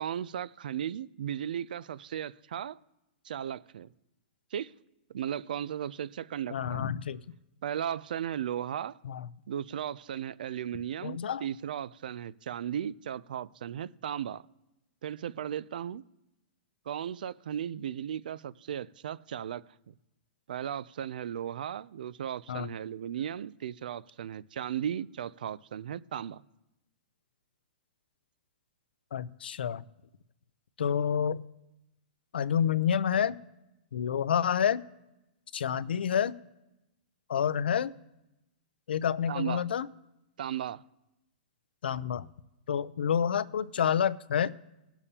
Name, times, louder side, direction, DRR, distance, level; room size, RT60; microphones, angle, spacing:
voice 1, 0.0-2.8 3.2-3.9 4.5-4.7 5.1-6.9 7.6-9.0 9.5-14.4 15.0-16.0 16.9-19.9 20.5-26.4 39.3-39.7 40.4-40.8, right 9 dB, 60° right, 0.4 m, -36 dB
voice 2, 6.5-7.2 9.0-9.2 11.0-11.4 22.5-22.7 29.1-29.8 30.8-31.4 32.3-33.4 33.9-34.8 35.5-36.3 37.3-37.9 38.9-39.9 41.8-42.3 42.7-44.5, left 8 dB, 90° left, 0.5 m, -28 dB
20.5 x 6.9 x 2.8 m
hypercardioid pair, 180°, 5 cm